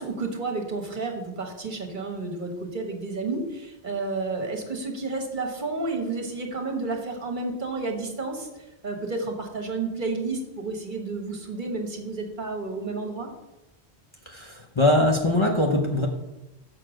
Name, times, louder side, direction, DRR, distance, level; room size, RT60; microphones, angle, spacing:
voice 1, 0.0-13.3, right 3 dB, 50° right, 3 dB, 1.4 m, -31 dB
voice 2, 14.3-16.1, left 1 dB, 30° left, 0 dB, 0.8 m, -22 dB
6.8 x 6.4 x 6.2 m, 1.0 s
omnidirectional pair, 1.1 m